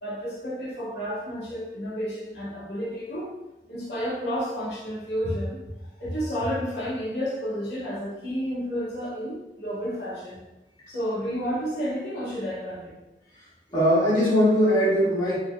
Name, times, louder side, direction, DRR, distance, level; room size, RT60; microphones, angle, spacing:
voice 1, 0.0-3.3 3.7-5.6 6.0-10.4 10.9-13.0, equal, 80° left, -7 dB, 1.1 m, -31 dB
voice 2, 13.7-15.4, equal, 25° left, -10 dB, 1.2 m, -20 dB
3.7 x 3.2 x 2.2 m, 1.0 s
head